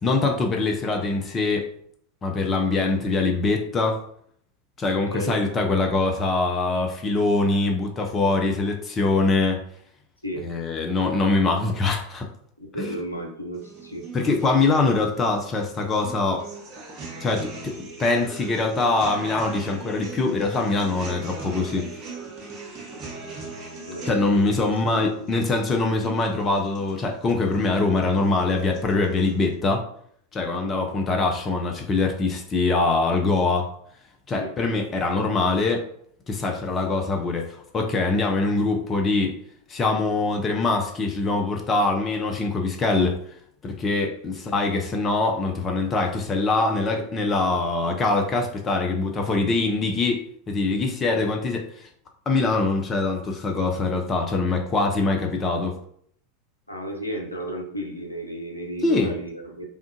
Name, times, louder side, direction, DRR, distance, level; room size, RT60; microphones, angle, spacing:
voice 1, 0.0-1.7 2.2-4.0 4.8-9.6 10.4-12.3 12.8-12.9 14.1-16.4 17.2-17.7 18.0-21.9 24.1-29.8 30.3-33.7 34.3-35.8 36.3-39.4 39.7-43.2 43.6-51.9 52.3-55.8 58.8-59.1, left 3 dB, 25° left, 2 dB, 0.6 m, -23 dB
voice 2, 12.6-14.1 23.9-25.0 30.6-30.9 34.4-34.5 50.9-51.3 56.7-59.7, right 1 dB, 90° left, 0 dB, 0.6 m, -33 dB
sound 1, 13.5-29.5, right 3 dB, 40° right, 1.0 m, -40 dB
3.5 x 2.4 x 2.7 m, 0.63 s
figure-of-eight pair, 85°, 0 cm